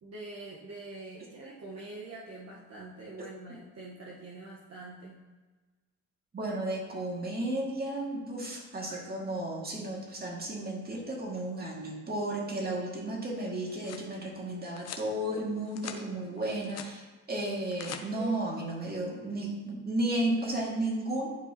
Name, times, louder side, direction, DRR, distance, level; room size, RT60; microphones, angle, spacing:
voice 1, 0.0-5.3, right 2 dB, 55° right, -4 dB, 1.2 m, -45 dB
voice 2, 6.3-21.4, right 1 dB, 30° right, -2 dB, 2.1 m, -33 dB
sound 1, 13.4-14.1 14.8-15.1 15.5-16.0 16.4-16.9 17.5-18.0, left 8 dB, 55° left, 0.7 m, -43 dB
11.5 x 4.7 x 2.9 m, 1.3 s
cardioid pair, 90°, 30 cm